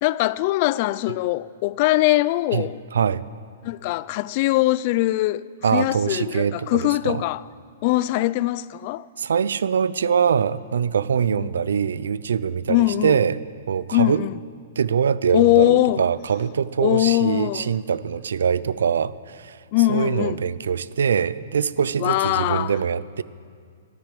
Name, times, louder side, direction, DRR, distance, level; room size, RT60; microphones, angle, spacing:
voice 1, 0.0-2.8 3.6-5.4 5.7-7.4 7.8-9.1 11.3-11.5 12.7-13.2 13.9-14.3 15.3-16.0 16.8-17.7 19.7-20.4 22.0-22.8, left 17 dB, 45° left, 0.4 m, -21 dB
voice 2, 2.9-3.2 5.6-7.2 9.2-14.2 14.8-19.6 19.9-23.2, right 7 dB, 85° right, 0.5 m, -23 dB
13.5 x 10.5 x 7.7 m
hypercardioid pair, 145°, 0 cm